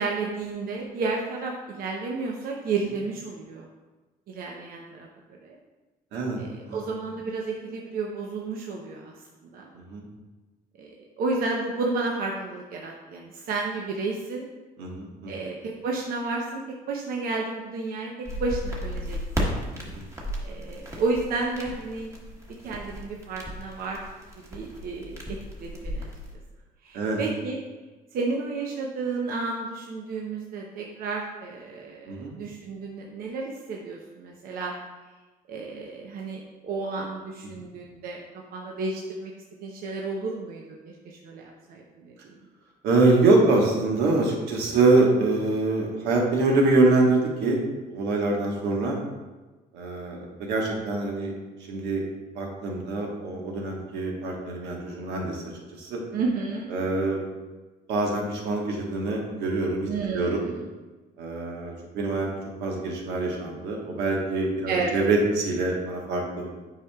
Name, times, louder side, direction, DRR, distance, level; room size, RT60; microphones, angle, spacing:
voice 1, 0.0-3.7 4.3-5.1 5.4-5.6 6.4-9.1 9.5-9.7 10.8-10.9 11.2-14.4 15.3-15.5 15.8-16.6 16.9-19.6 20.4-22.1 22.6-24.0 24.5-26.1 26.8-27.6 28.1-34.7 35.5-38.2 38.5-39.3 39.6-40.6 41.0-42.1 56.1-56.7 59.9-60.7 64.7-65.0, right 3 dB, 60° right, -1 dB, 0.7 m, -31 dB
voice 2, 14.8-15.3 19.7-20.0 26.9-27.2 32.1-32.3 42.8-47.6 47.9-49.0 49.7-51.3 51.7-52.0 52.3-55.4 55.8-56.0 56.7-57.2 57.9-59.9 60.1-60.4 61.2-62.3 62.6-66.5, right 2 dB, 85° right, -1 dB, 1.3 m, -24 dB
sound 1, 18.3-26.3, equal, 20° right, 1.3 m, -34 dB
8.3 x 5.0 x 2.3 m, 1.2 s
cardioid pair, 110°, 17 cm